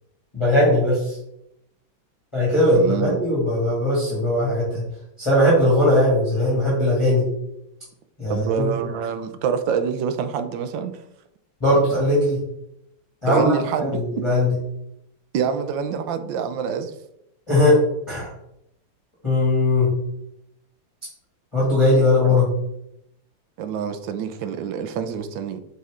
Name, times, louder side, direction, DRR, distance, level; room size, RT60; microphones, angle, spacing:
voice 1, 0.3-1.2 2.3-4.8 5.2-7.3 8.2-8.7 11.6-12.4 13.2-14.5 17.5-17.8 18.1-18.3 19.2-19.9 21.5-22.5, left 1 dB, 15° left, -8 dB, 2.2 m, -19 dB
voice 2, 2.7-3.2 8.3-10.9 13.3-14.0 15.3-16.9 22.2-22.5 23.6-25.6, right 7 dB, 70° right, 9 dB, 1.3 m, -26 dB
7.6 x 4.2 x 3.7 m, 0.80 s
omnidirectional pair, 2.3 m